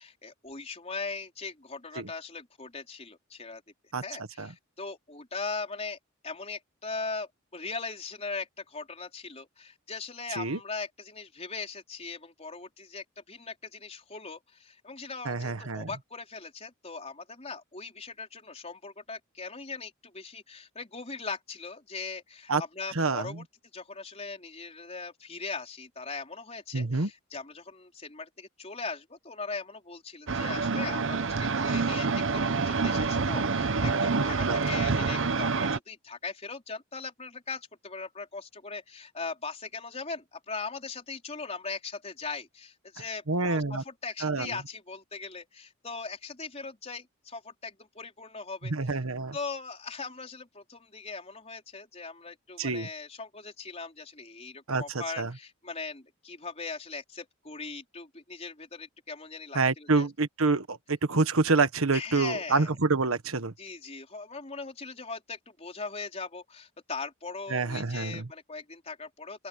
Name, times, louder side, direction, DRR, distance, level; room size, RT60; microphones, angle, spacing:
voice 1, 0.0-3.6 4.0-6.0 6.2-23.4 23.7-48.7 49.3-60.1 61.9-62.7 63.6-69.5, left 4 dB, 30° left, 4.4 m, -40 dB
voice 2, 15.2-15.9 22.5-22.6 22.9-23.3 26.7-27.1 34.5-34.8 43.3-43.8 44.2-44.6 48.6-49.3 52.6-52.9 54.7-55.3 59.5-63.5 67.5-68.3, right 3 dB, 80° right, 1.4 m, -27 dB
sound 1, 30.3-35.8, right 4 dB, 60° right, 0.9 m, -27 dB
open air
head